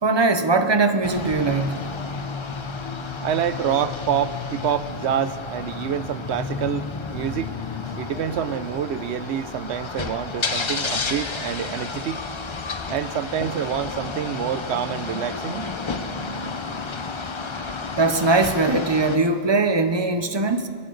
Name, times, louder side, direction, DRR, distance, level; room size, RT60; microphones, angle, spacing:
voice 1, 0.0-1.9 13.4-13.5 18.0-20.7, right 3 dB, 30° right, 0.7 m, -21 dB
sound 1, 1.0-19.2, left 4 dB, 30° left, 0.6 m, -31 dB
voice 2, 3.2-7.5 8.0-12.2 12.9-15.7, right 9 dB, 75° right, 0.9 m, -27 dB
23.5 x 14.0 x 3.9 m
omnidirectional pair, 1.2 m